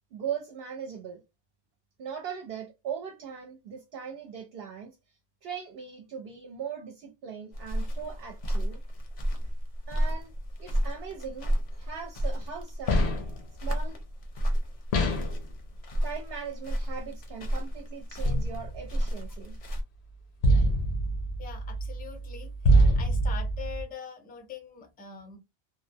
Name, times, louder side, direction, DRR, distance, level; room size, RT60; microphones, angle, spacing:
voice 1, 0.1-1.2 2.0-8.8 9.9-10.3 10.6-13.1 13.6-14.0 16.0-19.6, right 7 dB, 65° right, 0.7 m, -39 dB
sound 1, 7.5-19.8, equal, 50° left, 0.6 m, -31 dB
sound 2, 12.9-13.4 14.9-15.4 18.3-18.9 20.4-23.8, right 1 dB, 75° left, 0.9 m, -25 dB
voice 2, 21.4-22.5 22.9-25.4, left 7 dB, 15° left, 0.3 m, -43 dB
2.6 x 2.0 x 2.6 m
omnidirectional pair, 1.1 m